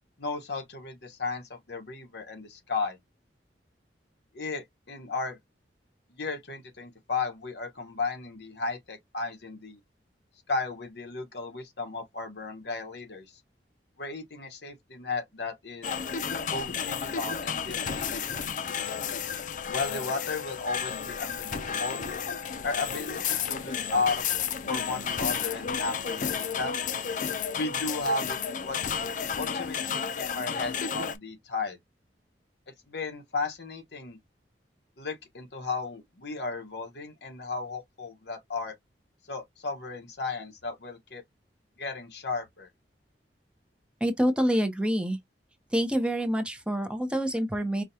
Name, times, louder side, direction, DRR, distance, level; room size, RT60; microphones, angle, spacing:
voice 1, 0.2-3.0 4.3-5.4 6.1-9.8 10.5-13.3 14.0-15.9 16.5-18.7 19.6-22.0 22.6-24.2 24.7-26.7 27.5-28.9 29.4-31.8 32.9-34.2 35.0-38.7 39.3-41.2 41.8-42.7, left 3 dB, 65° left, 1.2 m, -34 dB
sound 1, 15.8-31.2, left 7 dB, 45° left, 0.5 m, -32 dB
voice 2, 44.0-45.2 45.7-47.8, equal, 5° right, 0.7 m, -27 dB
4.8 x 2.2 x 2.7 m
head